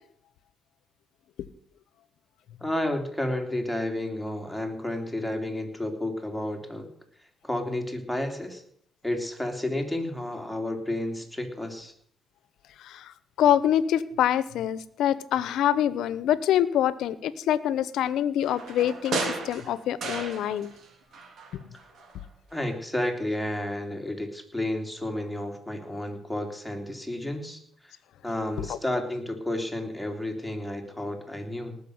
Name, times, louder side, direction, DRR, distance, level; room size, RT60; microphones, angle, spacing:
voice 1, 2.6-6.9 7.4-8.6 9.0-11.9 22.5-27.9 28.2-31.8, left 1 dB, ahead, 2 dB, 3.2 m, -31 dB
voice 2, 12.8-20.7 21.5-21.7 28.7-28.8, left 11 dB, 80° left, 17 dB, 0.9 m, -25 dB
sound 1, 18.4-20.9 21.1-22.2 22.5-22.6, right 3 dB, 65° right, 3.5 m, -34 dB
18.5 x 6.5 x 8.0 m, 0.62 s
cardioid pair, 90°, 0 cm